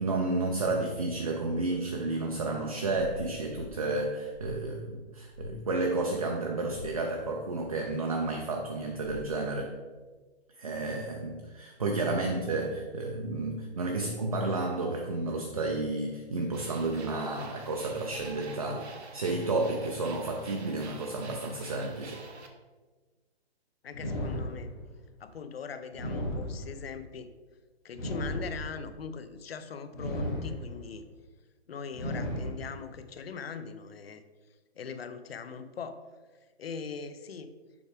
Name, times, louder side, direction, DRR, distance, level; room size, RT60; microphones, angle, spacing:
voice 1, 0.0-9.7 10.6-22.2, right 2 dB, 35° right, 2 dB, 0.4 m, -31 dB
SF Battle, 2.9-3.8 4.3-4.7 5.3-5.6 6.7-7.0 9.0-9.4, left 3 dB, 80° left, 1.4 m, -44 dB
sound 1, 16.5-22.5, right 4 dB, 80° right, 1.1 m, -48 dB
voice 2, 23.8-24.7 25.2-27.3 27.8-31.0 31.7-34.2 34.8-36.1 36.6-37.5, left 6 dB, 65° left, 11 dB, 0.6 m, -41 dB
sound 2, 23.9-25.0 25.9-27.0 27.9-29.0 29.9-31.0 31.9-33.0, equal, 15° left, 0.6 m, -35 dB
7.0 x 4.7 x 3.4 m, 1.3 s
hypercardioid pair, 170°, 32 cm